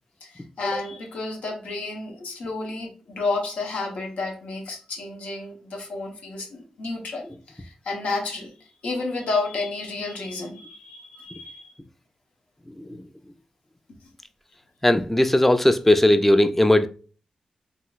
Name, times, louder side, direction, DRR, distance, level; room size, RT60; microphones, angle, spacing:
voice 1, 0.2-8.5 8.8-11.7 14.0-14.1, left 3 dB, 90° left, 0.8 m, -31 dB
voice 2, 12.7-13.0 14.8-16.9, left 1 dB, 10° left, 0.3 m, -18 dB
3.7 x 2.5 x 2.3 m
cardioid pair, 80°, 2 cm